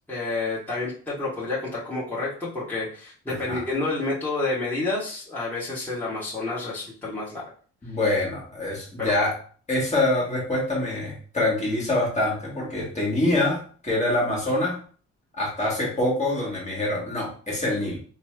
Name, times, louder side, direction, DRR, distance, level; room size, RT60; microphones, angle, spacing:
voice 1, 0.1-7.4 9.0-9.1, left 3 dB, 5° left, -9 dB, 1.2 m, -29 dB
voice 2, 3.3-3.6 7.8-9.4 9.7-14.8 15.4-18.0, left 2 dB, 25° left, -3 dB, 1.4 m, -25 dB
3.2 x 2.0 x 3.2 m, 0.43 s
cardioid pair, 90°, 30 cm